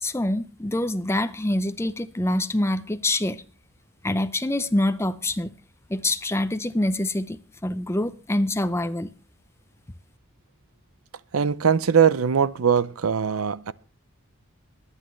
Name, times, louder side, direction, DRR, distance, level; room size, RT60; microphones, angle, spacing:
voice 1, 0.0-3.4 4.0-5.5 5.9-9.1, left 1 dB, 10° left, 0.5 m, -25 dB
voice 2, 11.3-13.7, right 7 dB, 80° right, 0.6 m, -21 dB
23.5 x 9.9 x 3.2 m
head